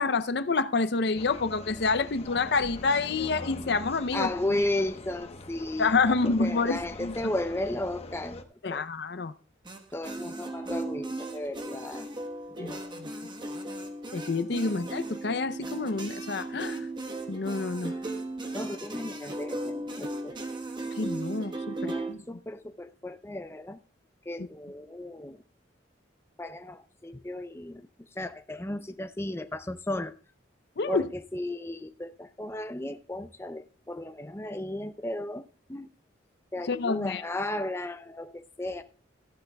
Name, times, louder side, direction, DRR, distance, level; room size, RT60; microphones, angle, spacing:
voice 1, 0.0-4.6 5.8-7.1 8.6-9.3 12.6-13.1 14.1-16.9 17.3-17.9 21.0-22.2 30.8-31.1 36.7-37.2, left 4 dB, 60° left, 0.6 m, -28 dB
sound 1, 1.1-8.4, left 2 dB, 35° left, 0.9 m, -43 dB
voice 2, 4.1-8.4 8.7-8.8 9.9-12.1 12.5-12.9 14.6-14.8 18.5-20.4 21.8-23.8 24.3-25.4 26.4-30.1 30.9-35.9 36.5-38.8, left 1 dB, 15° left, 0.5 m, -35 dB
sound 2, 9.6-22.1, right 2 dB, 25° right, 1.2 m, -36 dB
14.5 x 12.0 x 2.2 m
head